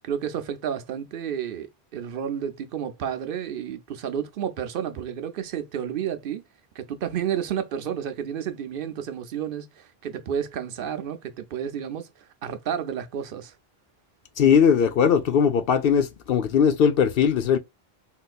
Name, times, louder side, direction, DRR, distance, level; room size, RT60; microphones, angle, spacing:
voice 1, 0.0-6.4 6.7-12.1 12.4-13.5, right 9 dB, 65° right, 0.8 m, -31 dB
voice 2, 14.4-17.6, left 7 dB, 65° left, 0.8 m, -19 dB
3.7 x 2.6 x 2.3 m
omnidirectional pair, 1.1 m